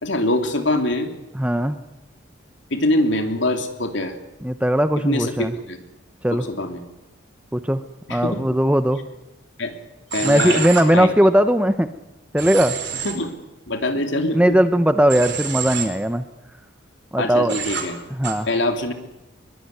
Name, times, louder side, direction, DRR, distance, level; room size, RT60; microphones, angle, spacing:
voice 1, 0.0-1.1 2.7-4.1 5.0-5.3 5.7-5.8 6.5-6.8 8.1-8.4 9.6-9.7 10.1-11.1 13.0-13.3 13.7-14.6 17.2-18.0 18.5-18.9, left 1 dB, 65° left, 5 dB, 3.2 m, -23 dB
voice 2, 1.3-1.8 4.4-5.5 6.2-6.4 7.5-7.8 8.1-9.0 10.2-11.9 12.3-12.7 14.3-16.2 17.1-17.6 18.1-18.5, equal, 5° right, 10 dB, 0.8 m, -18 dB
Human voice / Train, 10.1-10.8 12.4-13.1 15.1-15.8 17.5-17.8 18.2-18.3, right 7 dB, 55° right, 4.5 m, -27 dB
22.5 x 22.0 x 9.6 m, 0.96 s
head